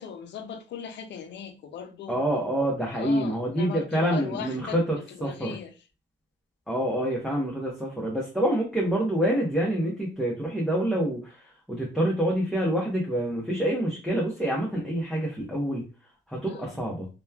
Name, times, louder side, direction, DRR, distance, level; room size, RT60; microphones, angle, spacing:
voice 1, 0.0-2.2 2.9-4.8 5.2-5.7 16.4-16.8, left 7 dB, 65° left, 0.5 m, -38 dB
voice 2, 2.1-5.6 6.7-15.8 16.3-17.1, right 1 dB, ahead, 0.8 m, -27 dB
2.9 x 2.2 x 2.2 m
cardioid pair, 90°, 20 cm